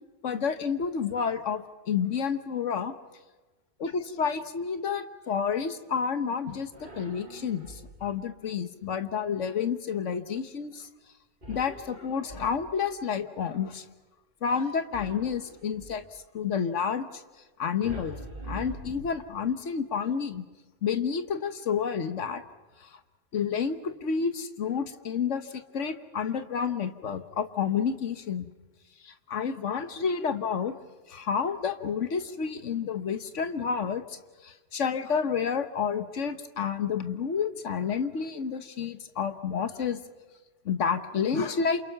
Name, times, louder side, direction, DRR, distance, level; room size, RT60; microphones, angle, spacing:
voice 1, 0.2-2.9 3.8-6.7 7.0-10.9 11.5-13.8 14.4-16.0 16.3-17.2 17.6-18.2 18.5-20.4 20.8-22.4 23.3-28.5 29.0-30.7 31.1-34.2 34.4-40.0 40.6-41.8, left 6 dB, 70° left, 10 dB, 1.5 m, -30 dB
sound 1, 6.7-8.2 11.4-13.0 14.9-16.1 17.8-19.5, right 1 dB, 40° right, 2.4 m, -44 dB
28.0 x 28.0 x 5.9 m, 1.2 s
omnidirectional pair, 1.3 m